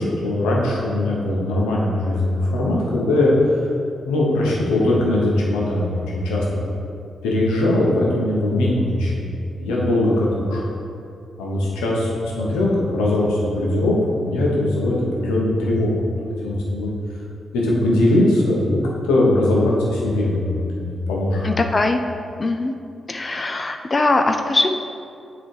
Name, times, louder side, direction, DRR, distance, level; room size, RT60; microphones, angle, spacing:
voice 1, 0.0-3.3 4.1-6.4 7.2-9.3 9.6-10.6 11.4-15.9 16.4-16.9 17.5-18.8 19.0-21.5, left 1 dB, 90° left, -4 dB, 1.0 m, -20 dB
voice 2, 21.4-22.0 22.4-22.7 23.1-24.8, left 2 dB, 40° left, 5 dB, 0.4 m, -21 dB
7.7 x 3.2 x 4.8 m, 2.5 s
supercardioid pair, 45°, 0 cm